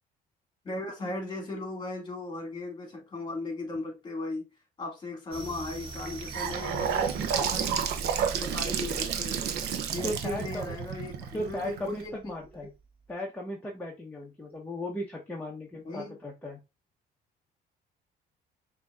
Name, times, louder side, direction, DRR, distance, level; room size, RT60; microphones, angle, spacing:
voice 1, 0.6-4.5 4.8-7.9 8.1-9.4 9.9-12.3 15.8-16.2, left 2 dB, 25° left, 2.0 m, -37 dB
sound 1, 5.3-12.8, right 3 dB, 30° right, 1.3 m, -42 dB
Gurgling / Sink (filling or washing) / Bathtub (filling or washing), 5.9-12.0, right 8 dB, 75° right, 0.7 m, -31 dB
voice 2, 10.0-10.5 11.3-12.7 13.1-16.6, left 1 dB, 10° left, 0.9 m, -36 dB
5.8 x 2.8 x 2.3 m
cardioid pair, 110°, 17 cm